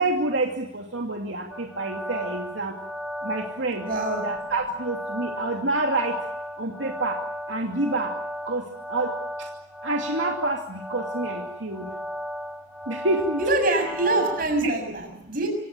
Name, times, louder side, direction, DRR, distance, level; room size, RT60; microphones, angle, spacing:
voice 1, 0.0-2.8 3.2-3.9 4.2-6.2 6.6-7.2 7.5-8.1 8.4-9.1 9.8-11.9 12.9-13.4 14.6-14.7, right 2 dB, 80° right, 2 dB, 2.6 m, -27 dB
sound 1, 1.5-14.4, equal, 5° right, 1.4 m, -35 dB
voice 2, 3.8-4.2 13.4-15.5, right 2 dB, 50° right, 4 dB, 6.9 m, -24 dB
27.0 x 17.0 x 8.7 m, 0.79 s
head